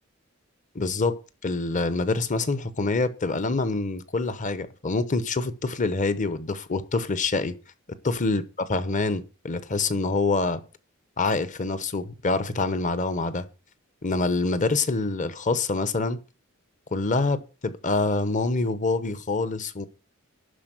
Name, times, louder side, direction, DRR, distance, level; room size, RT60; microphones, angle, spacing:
voice 1, 0.7-7.6 8.0-10.6 11.2-13.5 14.0-16.2 16.9-19.9, left 3 dB, 40° left, 0.9 m, -26 dB
11.5 x 4.4 x 7.6 m
head